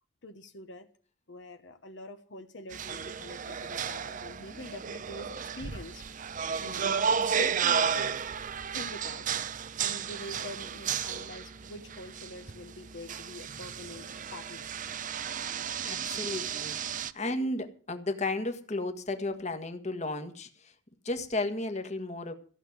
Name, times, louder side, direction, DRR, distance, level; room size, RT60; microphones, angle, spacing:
voice 1, 0.2-0.9 1.3-6.0 6.5-8.3 8.7-9.3 9.8-14.0 14.3-14.7, left 2 dB, 70° left, 1.1 m, -44 dB
sound 1, 2.7-17.1, right 7 dB, 45° right, 0.6 m, -33 dB
voice 2, 15.8-20.7 21.0-22.3, left 2 dB, 35° left, 1.5 m, -34 dB
14.5 x 6.4 x 9.4 m
head